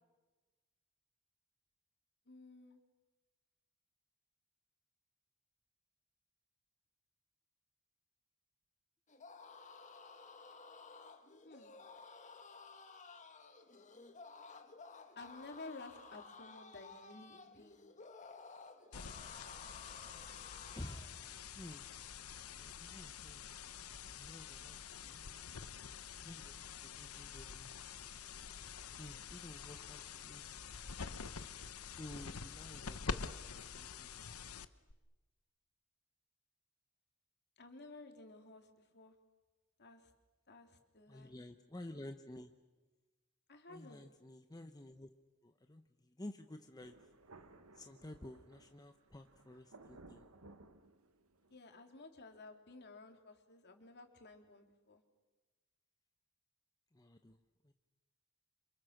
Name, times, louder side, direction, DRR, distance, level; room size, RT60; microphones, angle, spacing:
voice 1, 2.3-2.8 11.4-11.7 15.1-17.8 37.6-39.1 39.8-40.1 40.5-41.3 43.5-44.0 51.5-55.0, left 3 dB, 50° left, 4 dB, 3.3 m, -54 dB
sound 1, 9.1-21.2, left 4 dB, 35° left, 1.8 m, -55 dB
sound 2, 18.9-34.9, left 6 dB, 90° left, 1.0 m, -47 dB
voice 2, 20.7-21.2 21.6-21.9 22.6-23.4 24.1-24.8 25.0-25.2 26.2-27.7 29.0-30.5 31.8-33.4 33.7-34.3 41.1-42.5 43.7-45.1 45.4-46.9 47.8-50.2 56.9-57.4 57.6-57.7, left 1 dB, 20° left, 6 dB, 1.0 m, -52 dB
Thunder, 46.8-51.6, right 2 dB, 85° right, 1.7 m, -60 dB
29.5 x 27.0 x 6.6 m, 1.2 s
head